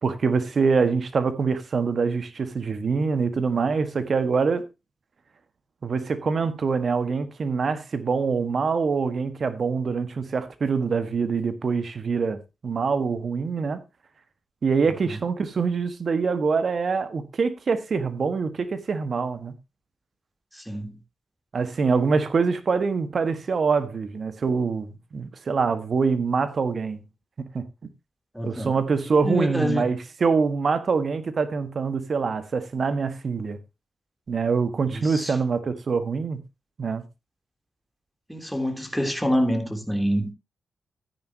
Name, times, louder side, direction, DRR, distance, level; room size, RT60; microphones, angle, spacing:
voice 1, 0.0-4.6 5.8-13.8 14.6-19.5 21.5-27.0 27.4-27.6 28.4-33.6 34.3-36.4 36.8-37.0, right 5 dB, 60° right, 1.7 m, -25 dB
voice 2, 20.5-21.0 28.3-28.8 29.2-29.9 34.9-35.4 38.3-40.3, equal, ahead, 3.3 m, -26 dB
13.5 x 9.9 x 2.9 m
cardioid pair, 70°, 0 cm